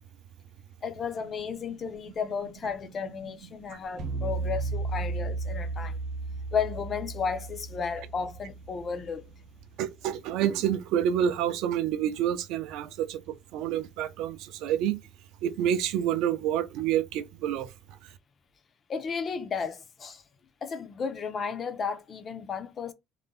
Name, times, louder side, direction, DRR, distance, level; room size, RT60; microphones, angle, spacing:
voice 1, 0.8-6.0 6.5-9.3 18.9-20.2 20.6-22.9, left 6 dB, 25° left, 0.3 m, -33 dB
sound 1, 4.0-9.3, right 3 dB, 50° right, 0.7 m, -34 dB
voice 2, 9.8-15.0 15.4-17.7, right 10 dB, 70° right, 0.4 m, -28 dB
2.5 x 2.0 x 3.5 m
cardioid pair, 175°, 0 cm